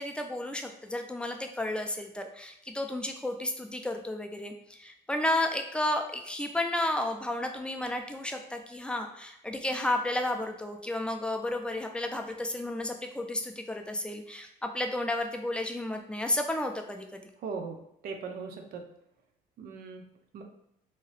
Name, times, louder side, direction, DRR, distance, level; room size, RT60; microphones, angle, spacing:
voice 1, 0.0-17.3, left 1 dB, 5° left, 4 dB, 0.3 m, -32 dB
voice 2, 17.4-17.8 18.0-18.8 19.6-20.0 20.3-20.4, right 5 dB, 60° right, 4 dB, 0.6 m, -38 dB
2.7 x 2.3 x 3.2 m, 0.78 s
cardioid pair, 110°, 17 cm